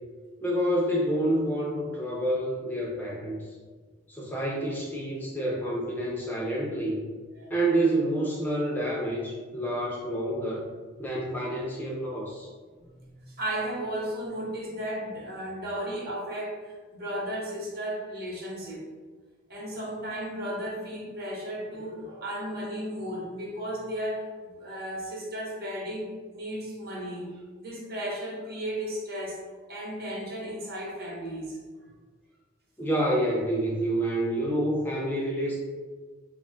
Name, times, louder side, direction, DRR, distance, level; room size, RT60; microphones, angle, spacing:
voice 1, 0.4-3.5 4.1-7.1 7.5-10.7 11.0-12.5 32.8-35.6, right 1 dB, 10° left, -4 dB, 0.3 m, -28 dB
voice 2, 12.8-18.9 19.5-27.3 27.6-29.4 29.7-31.6, equal, 50° right, -3 dB, 0.7 m, -35 dB
2.4 x 2.1 x 3.6 m, 1.4 s
head